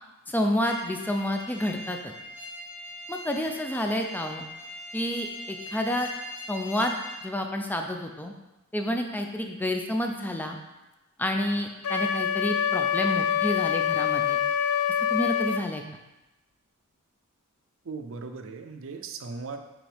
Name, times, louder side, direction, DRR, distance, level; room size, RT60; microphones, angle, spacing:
voice 1, 0.3-2.1 3.1-4.4 4.9-6.1 6.5-7.0 7.2-8.3 8.7-10.6 11.2-14.4 15.1-15.8, left 1 dB, 10° left, 4 dB, 0.5 m, -29 dB
sound 1, 0.6-7.2, left 1 dB, 5° right, 1.1 m, -41 dB
Wind instrument woodwind instrument, 11.8-15.6, left 9 dB, 70° left, 0.4 m, -25 dB
voice 2, 17.8-19.6, right 4 dB, 65° right, 7 dB, 0.5 m, -38 dB
6.0 x 5.2 x 3.4 m, 1.0 s
head